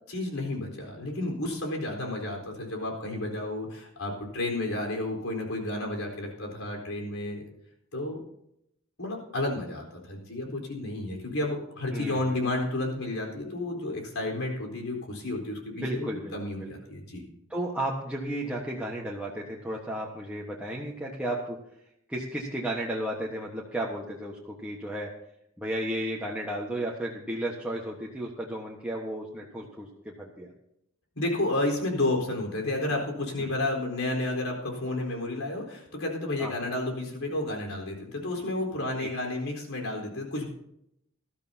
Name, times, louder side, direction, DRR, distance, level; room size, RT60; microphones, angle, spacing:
voice 1, 0.1-7.4 7.9-8.2 9.0-17.2 31.2-40.5, left 2 dB, 75° left, 1 dB, 4.1 m, -31 dB
voice 2, 11.9-12.4 15.8-16.7 17.5-21.6 22.1-25.1 25.6-30.5 33.4-33.5 36.4-36.5 39.0-39.1, right 1 dB, 5° right, -4 dB, 1.3 m, -33 dB
19.5 x 13.0 x 2.8 m, 0.77 s
head